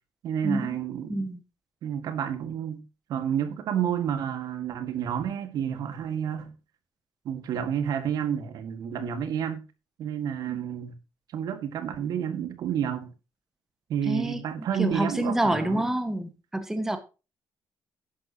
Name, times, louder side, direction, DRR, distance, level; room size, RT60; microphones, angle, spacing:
voice 1, 0.2-1.3 1.8-2.8 3.1-6.5 7.3-9.6 10.0-11.0 11.3-13.1 13.9-15.9, right 9 dB, 70° right, 1.8 m, -30 dB
voice 2, 1.1-1.4 14.1-14.4 14.8-17.0, right 1 dB, 5° right, 1.5 m, -27 dB
11.5 x 11.0 x 2.9 m
cardioid pair, 140°, 7 cm